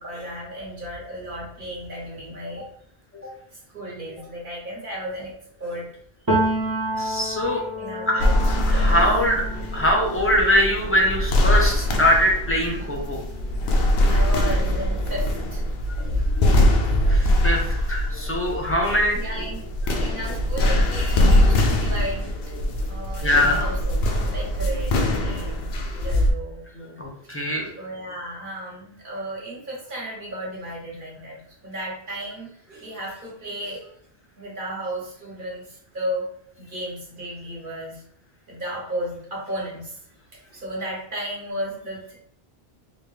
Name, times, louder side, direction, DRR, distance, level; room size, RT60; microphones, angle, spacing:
voice 1, 0.0-2.7 3.5-5.3 5.6-5.9 7.8-9.0 14.0-15.6 15.9-16.2 16.5-16.7 19.1-19.7 20.0-24.0 24.3-27.0 27.2-27.3 27.7-31.4 31.6-33.9 34.4-36.3 36.6-38.0 38.5-40.0 40.5-42.2, right 1 dB, 55° right, -4 dB, 1.3 m, -34 dB
Piano, 6.3-13.9 14.2-15.8, right 1 dB, 25° right, 0.6 m, -31 dB
voice 2, 7.0-7.6 8.1-8.2 8.7-9.4 9.7-13.2 17.1-19.2 23.2-23.6 27.0-27.7, left 1 dB, 15° left, -1 dB, 0.5 m, -22 dB
sound 1, 8.2-26.3, left 1 dB, 75° left, 0.8 m, -22 dB
3.5 x 2.3 x 3.2 m, 0.67 s
omnidirectional pair, 1.1 m